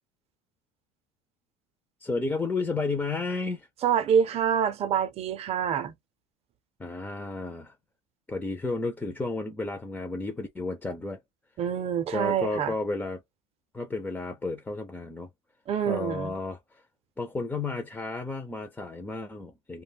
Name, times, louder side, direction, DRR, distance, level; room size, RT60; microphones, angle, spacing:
voice 1, 2.0-3.7 6.8-7.7 8.3-11.2 12.1-13.2 13.7-15.3 15.9-16.8 17.2-19.8, left 3 dB, 10° left, 0.4 m, -32 dB
voice 2, 3.8-5.9 11.6-12.7 15.7-16.4, right 8 dB, 40° right, 0.6 m, -26 dB
2.2 x 2.2 x 3.4 m
supercardioid pair, 120°, 17 cm